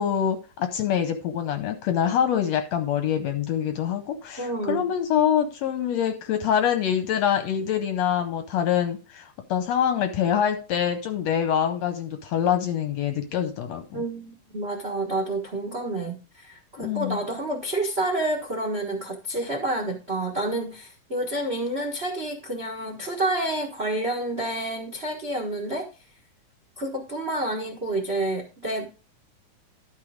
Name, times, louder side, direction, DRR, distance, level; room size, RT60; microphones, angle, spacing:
voice 1, 0.0-14.0 16.8-17.2, left 9 dB, 70° left, 8 dB, 1.7 m, -25 dB
voice 2, 4.4-4.8 13.9-25.9 26.8-28.8, right 1 dB, 70° right, 3 dB, 0.5 m, -29 dB
12.0 x 4.7 x 5.0 m, 0.33 s
omnidirectional pair, 3.7 m